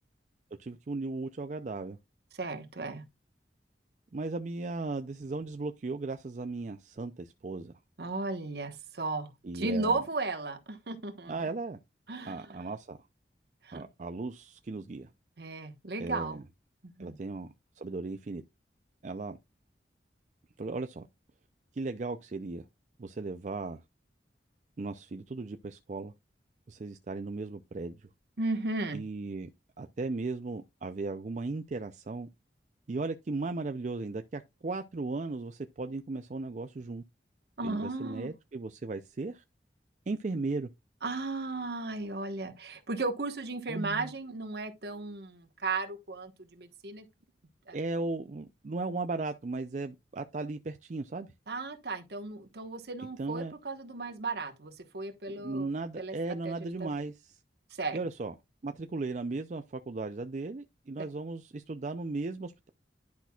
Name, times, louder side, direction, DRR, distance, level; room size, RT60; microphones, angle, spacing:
voice 1, 0.6-2.0 4.1-7.7 9.4-10.0 11.3-11.8 12.2-13.0 13.7-15.1 16.0-16.4 17.0-18.4 19.0-19.4 20.6-21.1 21.7-22.6 23.0-23.8 24.8-26.1 26.7-28.1 28.9-29.5 29.8-32.3 32.9-37.0 37.6-39.4 40.1-40.7 43.7-44.1 47.7-51.3 53.2-53.5 55.3-57.4 57.9-58.3 58.6-62.7, right 3 dB, 45° right, 0.4 m, -36 dB
voice 2, 2.3-3.0 8.0-11.4 12.1-12.6 13.6-13.9 15.4-16.4 16.8-17.2 28.4-29.0 37.6-38.3 41.0-47.0 47.7-47.8 51.5-55.7 56.0-56.2 56.4-56.9 57.8-58.0, right 3 dB, 65° right, 1.2 m, -35 dB
10.5 x 5.8 x 2.3 m
head